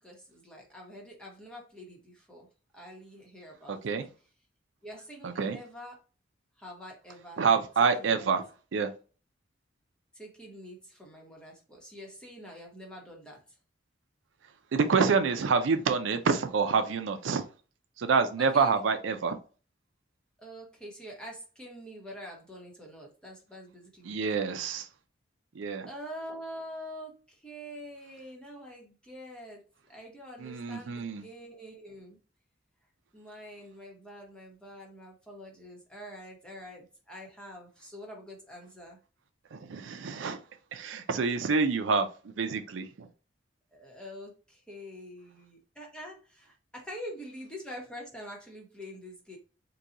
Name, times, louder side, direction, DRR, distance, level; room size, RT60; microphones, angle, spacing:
voice 1, 0.0-2.5 2.7-3.8 4.8-6.0 6.6-7.4 8.0-8.2 10.1-13.4 18.4-18.8 20.4-24.4 25.8-29.6 29.9-32.2 33.1-39.0 43.7-49.4, equal, 5° left, -1 dB, 1.0 m, -45 dB
voice 2, 3.7-4.1 5.2-5.6 7.4-8.4 8.7-8.9 14.7-17.4 18.0-19.4 24.1-24.9 25.6-25.9 30.4-31.2 39.5-40.4 40.7-42.1 42.4-43.1, right 5 dB, 80° right, 8 dB, 0.5 m, -27 dB
3.8 x 2.3 x 2.8 m, 0.36 s
head